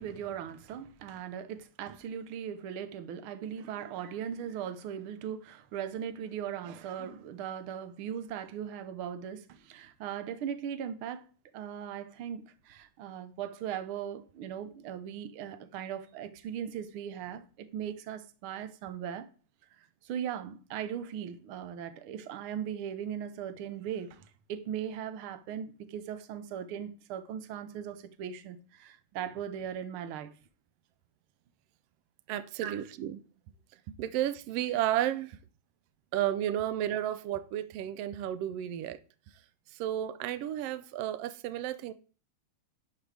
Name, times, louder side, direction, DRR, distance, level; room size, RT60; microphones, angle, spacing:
voice 1, 0.0-11.2 11.5-19.3 19.8-30.3 32.6-32.8, right 9 dB, 65° right, 1.3 m, -39 dB
voice 2, 32.3-33.2 33.9-35.4 36.1-39.0 39.8-41.9, right 12 dB, 85° right, 1.3 m, -32 dB
11.0 x 9.4 x 3.4 m
omnidirectional pair, 3.6 m